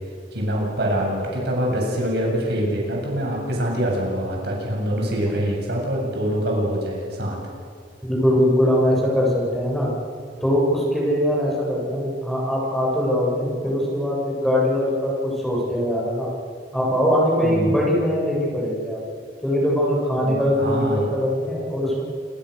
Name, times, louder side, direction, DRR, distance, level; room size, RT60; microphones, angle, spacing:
voice 1, 0.3-7.4 17.4-17.8 20.2-21.1, equal, 65° right, -1 dB, 7.7 m, -25 dB
voice 2, 8.1-9.9 10.4-16.3 16.7-19.0 19.4-22.0, equal, ahead, -4 dB, 7.7 m, -21 dB
28.5 x 26.0 x 6.8 m, 2.2 s
head